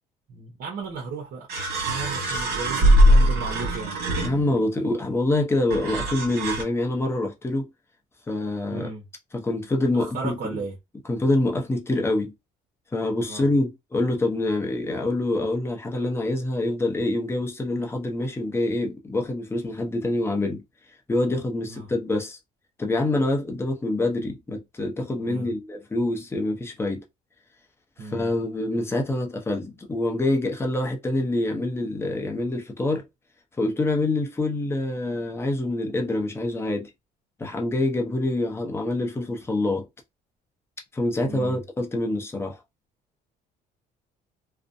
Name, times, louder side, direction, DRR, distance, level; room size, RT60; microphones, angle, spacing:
voice 1, 0.3-1.5 1.8-4.0 8.7-9.1 9.9-10.8 13.2-13.5 21.7-21.9 25.2-25.5 28.0-28.3 41.2-41.6, right 4 dB, 60° right, 0.8 m, -35 dB
sound 1, 0.8-0.9 1.5-4.7 5.7-6.6, equal, 75° right, 1.1 m, -21 dB
voice 2, 4.2-7.7 8.3-8.9 9.3-10.4 11.1-12.3 12.9-20.6 21.1-22.4 22.8-27.0 28.0-33.1 33.6-36.9 37.4-39.9 40.9-42.6, left 2 dB, 15° left, 0.6 m, -26 dB
2.5 x 2.1 x 2.6 m
cardioid pair, 110°, 17 cm